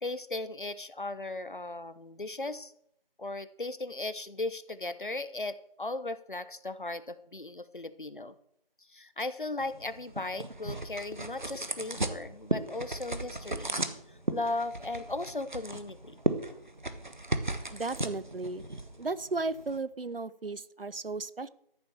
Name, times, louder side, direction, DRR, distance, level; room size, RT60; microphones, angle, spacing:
voice 1, 0.0-2.7 3.2-8.3 8.9-13.8 14.3-16.2, left 2 dB, 60° left, 14 dB, 0.9 m, -37 dB
sound 1, 9.6-19.8, right 2 dB, 50° right, 1.2 m, -36 dB
voice 2, 17.7-18.6 19.0-21.5, right 3 dB, 70° right, 18 dB, 0.8 m, -35 dB
14.0 x 7.0 x 6.9 m, 0.74 s
figure-of-eight pair, 175°, 29 cm